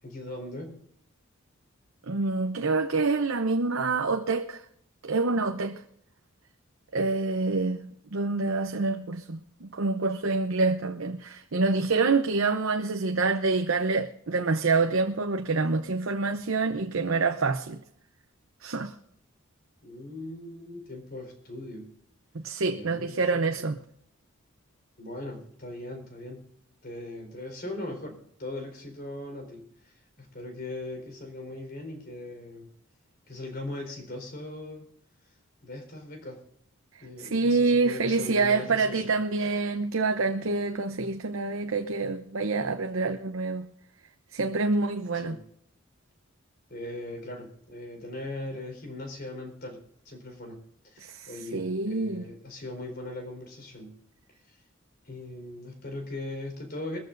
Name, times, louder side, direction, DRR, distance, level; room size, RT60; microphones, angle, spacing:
voice 1, 0.0-0.9 19.8-21.9 22.7-23.7 25.0-26.5 26.8-32.7 33.3-34.9 35.6-36.4 37.0-39.1 45.1-45.4 46.7-54.0 54.4-54.6 55.0-57.0, left 2 dB, 50° left, 4.3 m, -40 dB
voice 2, 2.1-4.6 5.0-5.8 6.9-17.8 18.6-18.9 22.3-23.8 37.2-43.7 44.3-45.4 51.0-52.2, right 3 dB, 75° right, 0.8 m, -27 dB
22.5 x 14.5 x 2.6 m
head